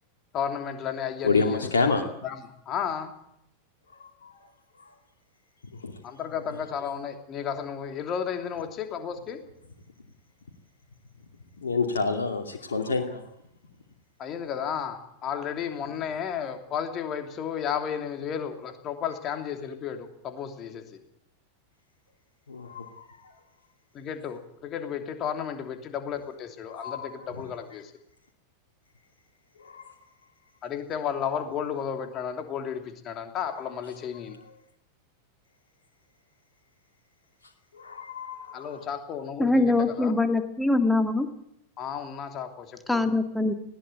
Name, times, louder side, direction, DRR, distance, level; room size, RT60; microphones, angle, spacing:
voice 1, 0.3-1.7 2.0-2.4 2.7-3.1 6.0-9.4 14.2-20.8 23.9-27.9 30.6-34.3 38.5-40.1 41.8-43.1, left 8 dB, 30° left, 5 dB, 2.9 m, -33 dB
voice 2, 1.2-2.0 4.0-4.4 5.8-5.9 6.5-6.6 11.6-13.2 15.9-16.0 22.5-23.3 26.7-27.4 29.6-29.8 34.1-34.5 37.7-38.9, left 4 dB, 70° left, 2 dB, 2.5 m, -29 dB
voice 3, 39.4-41.3 42.9-43.5, left 2 dB, 5° left, 7 dB, 1.9 m, -23 dB
20.0 x 16.5 x 9.1 m, 0.77 s
figure-of-eight pair, 90°, 0 cm